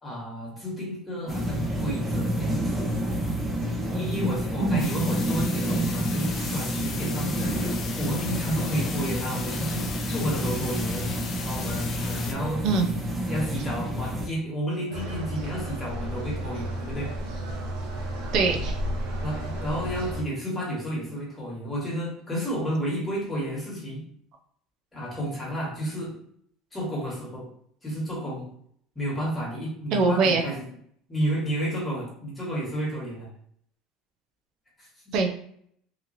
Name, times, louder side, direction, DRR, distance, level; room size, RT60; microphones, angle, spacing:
voice 1, 0.0-3.2 3.9-11.1 11.4-12.6 13.2-17.2 19.2-24.0 24.9-26.2 26.7-27.5 27.8-28.5 28.9-30.6 31.1-33.3 34.8-35.1, equal, 15° left, -5 dB, 1.5 m, -31 dB
sound 1, 1.3-14.3, equal, 10° right, 0.7 m, -29 dB
sound 2, 4.8-12.3, left 5 dB, 40° left, 0.5 m, -37 dB
sound 3, 14.9-20.2, right 1 dB, 90° right, 0.8 m, -32 dB
voice 2, 18.3-18.8 29.9-30.4 35.1-35.3, right 4 dB, 55° right, 4 dB, 0.6 m, -22 dB
2.9 x 2.5 x 2.7 m, 0.65 s
supercardioid pair, 120°, 0 cm